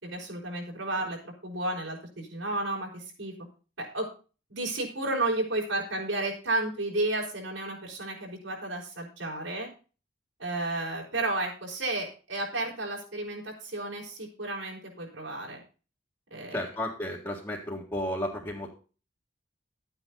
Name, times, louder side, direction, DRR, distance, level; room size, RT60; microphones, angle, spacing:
voice 1, 0.0-3.3 3.8-4.1 4.5-9.7 10.4-15.6 16.3-16.7, right 2 dB, 80° right, -1 dB, 5.1 m, -32 dB
voice 2, 16.5-18.7, left 1 dB, 20° left, -5 dB, 2.0 m, -33 dB
12.5 x 9.1 x 4.1 m, 0.35 s
head